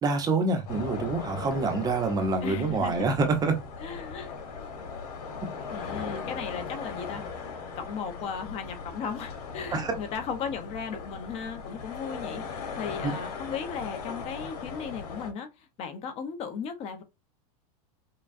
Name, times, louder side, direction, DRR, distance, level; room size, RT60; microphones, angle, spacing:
voice 1, 0.0-3.6 9.7-9.9 13.0-13.1, right 3 dB, 20° right, 0.8 m, -26 dB
sound 1, 0.7-15.3, left 5 dB, 80° left, 2.5 m, -38 dB
voice 2, 2.4-3.1 3.8-4.3 4.6-4.7 5.7-7.2 7.8-12.4 12.8-17.0, left 6 dB, 30° left, 0.9 m, -36 dB
5.7 x 2.3 x 2.6 m
supercardioid pair, 150°, 20 cm